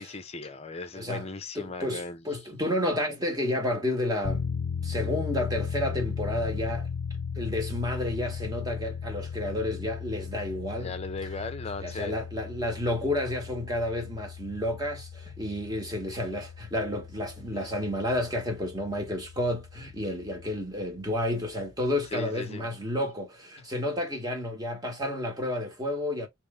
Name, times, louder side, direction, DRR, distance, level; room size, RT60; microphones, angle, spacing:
voice 1, 0.0-2.2 10.8-12.2 22.1-22.7, left 3 dB, 30° left, 0.6 m, -37 dB
voice 2, 0.9-1.3 1.5-4.4 4.8-6.9 7.3-10.9 11.8-26.3, left 1 dB, 20° right, 1.1 m, -31 dB
sound 1, 4.2-20.6, left 6 dB, 75° left, 0.5 m, -37 dB
3.1 x 3.0 x 3.6 m
head